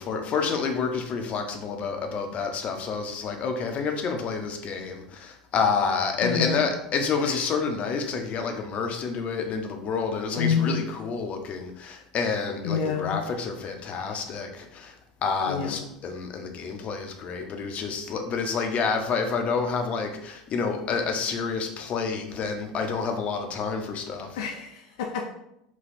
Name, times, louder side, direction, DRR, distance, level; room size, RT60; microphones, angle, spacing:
voice 1, 0.0-24.4, left 5 dB, 40° left, 4 dB, 0.8 m, -29 dB
voice 2, 6.2-6.7 7.2-7.4 10.4-10.8 12.6-13.2 15.5-15.8 24.3-25.3, left 6 dB, 70° left, 2 dB, 0.5 m, -28 dB
4.2 x 2.3 x 4.2 m, 0.81 s
hypercardioid pair, 80°, 3 cm